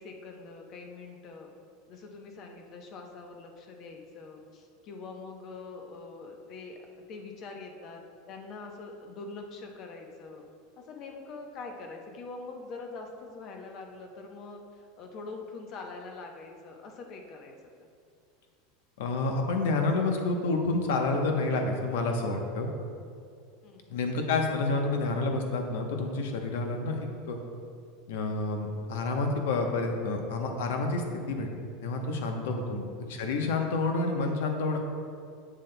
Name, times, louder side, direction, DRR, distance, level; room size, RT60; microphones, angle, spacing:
voice 1, 0.0-1.5 1.9-6.8 7.1-10.4 10.8-17.5 23.6-24.0 32.6-33.0, left 3 dB, 40° left, 3 dB, 0.8 m, -44 dB
voice 2, 19.0-22.7 23.9-27.0 27.3-27.4 28.1-31.5 31.8-32.8 33.1-34.8, left 3 dB, 80° left, 3 dB, 0.9 m, -29 dB
8.3 x 7.3 x 2.2 m, 2.3 s
supercardioid pair, 135°, 0 cm